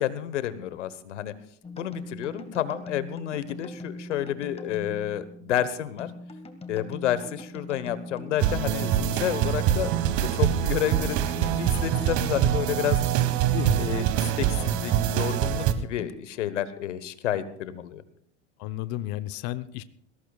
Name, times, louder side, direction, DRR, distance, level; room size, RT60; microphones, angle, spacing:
voice 1, 0.0-1.3 1.8-6.1 6.7-9.9 10.3-13.0 13.8-18.0, left 11 dB, 85° left, 14 dB, 1.3 m, -30 dB
sound 1, 1.6-16.1, left 2 dB, 15° left, 2.0 m, -41 dB
sound 2, 8.4-15.7, right 11 dB, 55° right, 1.6 m, -24 dB
voice 2, 18.6-19.8, left 14 dB, 55° left, 12 dB, 0.9 m, -32 dB
21.0 x 18.0 x 2.4 m, 0.65 s
hypercardioid pair, 90°, 35 cm